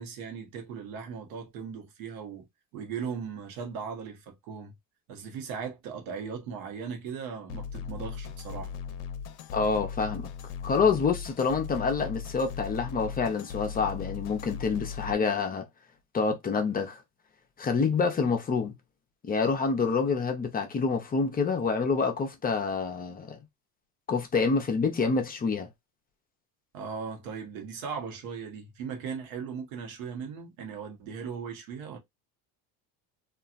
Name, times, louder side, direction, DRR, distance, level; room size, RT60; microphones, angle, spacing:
voice 1, 0.0-2.5 2.7-4.7 5.1-8.7 26.7-32.0, right 6 dB, 80° right, 1.1 m, -38 dB
sound 1, 7.5-15.1, left 7 dB, 65° left, 0.6 m, -38 dB
voice 2, 9.5-10.3 10.6-15.7 16.1-17.0 17.6-18.7 19.2-23.4 24.1-25.7, left 5 dB, 20° left, 0.5 m, -27 dB
2.8 x 2.4 x 2.4 m
supercardioid pair, 120°, 42 cm